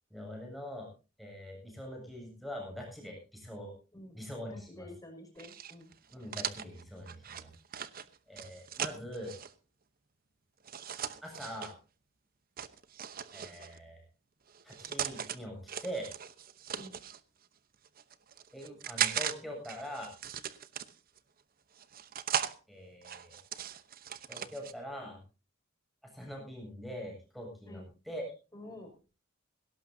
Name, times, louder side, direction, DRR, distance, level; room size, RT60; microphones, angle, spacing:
voice 1, 0.1-0.9 1.2-3.7 4.1-4.9 6.1-7.5 8.3-9.3 11.2-11.7 13.3-14.0 14.6-16.1 18.5-20.1 22.7-23.4 24.3-25.2 26.0-28.3, equal, ahead, 0 dB, 7.6 m, -43 dB
voice 2, 4.5-5.9 16.7-17.0 27.7-27.9 28.5-28.9, left 1 dB, 15° left, 2 dB, 5.8 m, -49 dB
sound 1, 5.4-9.5 10.6-11.7 12.6-13.8 14.5-15.4 15.7-17.2 17.8-19.3 19.6-21.2 21.8-22.5 23.0-24.7, right 9 dB, 45° right, 0.9 m, -38 dB
18.0 x 18.0 x 2.8 m, 0.33 s
head